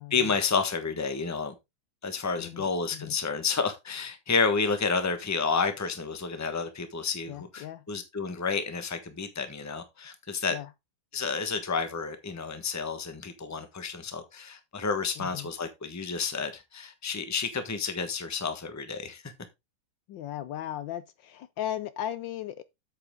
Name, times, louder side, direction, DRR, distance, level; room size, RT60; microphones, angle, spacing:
voice 1, 0.1-1.5 2.0-10.5 11.1-19.3, left 5 dB, 10° left, 1.0 m, -30 dB
voice 2, 2.4-3.2 7.3-7.8 10.5-10.7 15.2-15.5 20.1-22.6, left 11 dB, 70° left, 1.3 m, -37 dB
8.3 x 7.9 x 3.6 m
omnidirectional pair, 2.2 m